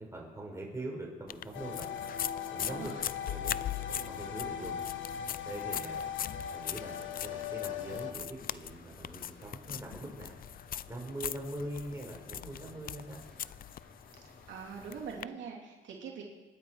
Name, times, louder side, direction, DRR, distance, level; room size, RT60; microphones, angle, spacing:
voice 1, 0.0-1.9 2.5-2.9 3.3-3.6 3.9-4.8 5.4-6.1 6.5-8.2 8.5-10.3 10.9-13.2, right 1 dB, 15° right, -1 dB, 5.6 m, -42 dB
sound 1, 1.3-15.2, left 10 dB, 45° left, 0.5 m, -41 dB
sound 2, 1.5-8.1, left 8 dB, 75° left, 1.5 m, -39 dB
voice 2, 2.6-3.0 14.5-16.2, right 6 dB, 70° right, -2 dB, 3.0 m, -43 dB
sound 3, 4.3-15.1, equal, 5° left, 5.9 m, -58 dB
26.5 x 10.5 x 4.9 m, 1.3 s
cardioid pair, 90°, 20 cm